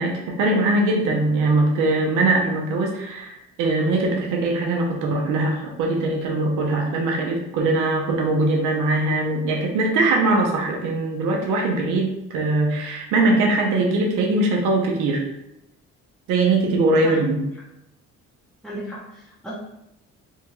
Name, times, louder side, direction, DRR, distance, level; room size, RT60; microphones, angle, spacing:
voice 1, 0.0-15.2 16.3-17.4, right 2 dB, 90° right, 0 dB, 0.6 m, -21 dB
voice 2, 18.6-19.5, equal, ahead, -9 dB, 0.6 m, -35 dB
2.6 x 2.2 x 2.9 m, 0.85 s
cardioid pair, 90°, 30 cm